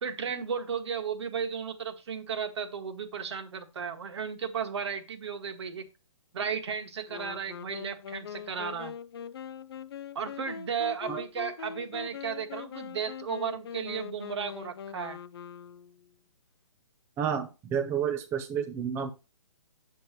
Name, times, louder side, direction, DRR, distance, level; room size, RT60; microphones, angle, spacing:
voice 1, 0.0-5.9 6.3-8.9 10.2-15.2, right 7 dB, 55° right, 7 dB, 1.9 m, -34 dB
Wind instrument woodwind instrument, 7.1-16.1, left 8 dB, 50° left, 0.6 m, -42 dB
voice 2, 17.2-19.1, right 8 dB, 15° right, 6 dB, 0.7 m, -30 dB
9.3 x 7.3 x 3.1 m, 0.29 s
hypercardioid pair, 150°, 17 cm